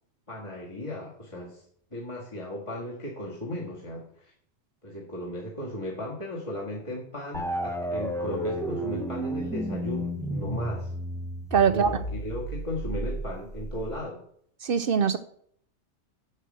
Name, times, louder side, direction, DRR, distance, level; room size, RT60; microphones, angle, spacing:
voice 1, 0.3-1.6 1.9-4.3 4.8-10.9 11.7-14.2, left 1 dB, 25° left, 1.9 m, -36 dB
sound 1, 7.3-14.0, right 1 dB, 5° left, 0.7 m, -32 dB
voice 2, 11.5-12.0 14.6-15.2, right 7 dB, 60° right, 0.7 m, -22 dB
7.7 x 6.7 x 7.4 m
omnidirectional pair, 1.2 m